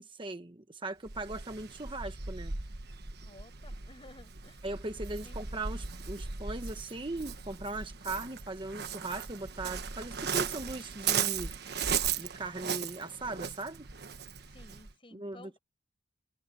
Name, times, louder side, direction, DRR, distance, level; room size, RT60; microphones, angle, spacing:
voice 1, 0.0-2.5 4.6-11.6 12.2-13.9 15.1-15.6, right 2 dB, 25° right, 1.1 m, -39 dB
Waves surf, 1.0-14.9, right 7 dB, 60° right, 1.3 m, -37 dB
voice 2, 3.2-4.6 5.2-5.4 14.5-15.6, left 2 dB, 30° left, 5.8 m, -55 dB
head